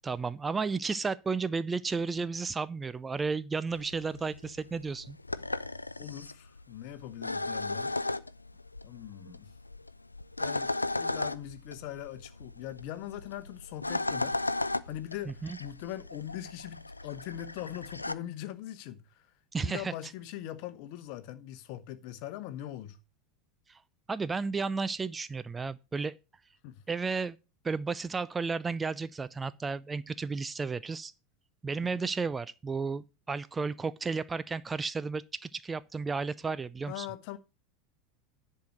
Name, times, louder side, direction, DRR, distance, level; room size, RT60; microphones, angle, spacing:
voice 1, 0.0-5.2 15.3-15.6 19.5-19.9 23.7-23.8 24.1-26.1 26.9-27.4 27.6-31.1 31.6-37.1, right 4 dB, 15° right, 0.4 m, -33 dB
sound 1, 3.7-18.1, left 2 dB, 85° left, 0.4 m, -36 dB
voice 2, 6.0-7.9 8.8-9.5 10.4-14.4 14.9-19.3 19.6-23.0 26.6-26.8 31.8-32.1 36.9-37.4, left 12 dB, 50° left, 1.0 m, -41 dB
10.5 x 4.6 x 6.4 m
figure-of-eight pair, 80°, 0 cm